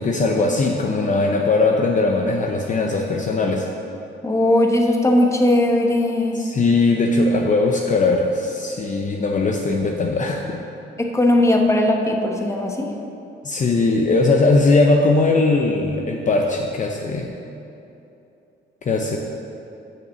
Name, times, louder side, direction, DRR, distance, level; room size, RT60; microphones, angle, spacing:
voice 1, 0.0-3.7 6.3-10.6 13.4-17.3 18.8-19.2, left 3 dB, 40° left, 1 dB, 0.7 m, -19 dB
voice 2, 4.2-6.4 11.0-12.9, left 1 dB, 15° left, 2 dB, 1.1 m, -18 dB
6.6 x 6.0 x 7.0 m, 2.8 s
cardioid pair, 90°, 20 cm